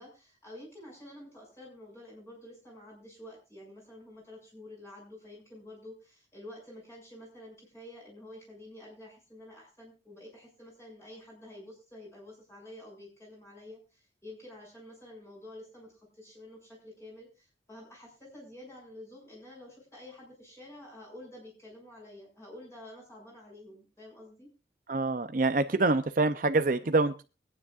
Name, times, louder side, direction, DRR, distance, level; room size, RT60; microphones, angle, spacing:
voice 1, 0.0-24.5, left 1 dB, 15° left, -3 dB, 6.6 m, -49 dB
voice 2, 24.9-27.2, right 3 dB, 45° right, 10 dB, 0.6 m, -26 dB
23.5 x 9.8 x 2.5 m, 0.30 s
head